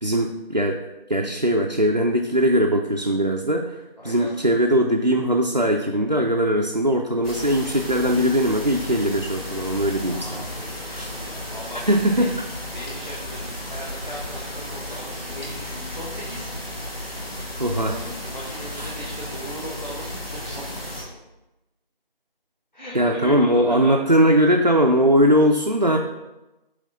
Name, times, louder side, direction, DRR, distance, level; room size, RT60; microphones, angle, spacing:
voice 1, 0.0-0.8 1.1-3.8 4.0-10.4 10.9-11.1 11.9-12.4 14.9-15.0 17.6-18.0 18.7-18.9 22.9-26.0, equal, 50° right, 1 dB, 0.4 m, -20 dB
voice 2, 4.0-4.3 10.0-16.5 17.7-21.1 22.7-24.2, equal, 50° left, -5 dB, 1.3 m, -38 dB
sound 1, 7.2-21.0, left 1 dB, 85° left, 2.0 m, -34 dB
8.3 x 3.3 x 3.8 m, 1.0 s
figure-of-eight pair, 175°, 29 cm